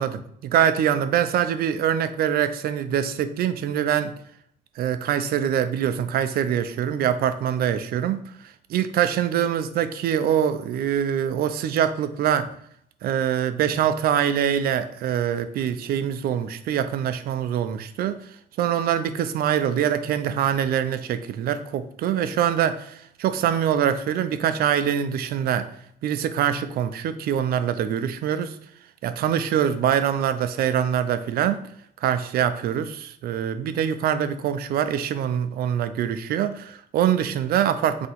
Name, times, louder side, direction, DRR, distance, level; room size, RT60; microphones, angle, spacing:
voice 1, 0.0-4.1 4.8-8.2 8.7-12.5 13.0-18.2 18.6-25.7 26.0-28.5 29.0-31.6 32.0-38.1, right 9 dB, 75° right, 0.4 m, -24 dB
3.9 x 2.9 x 4.1 m
cardioid pair, 135°, 16 cm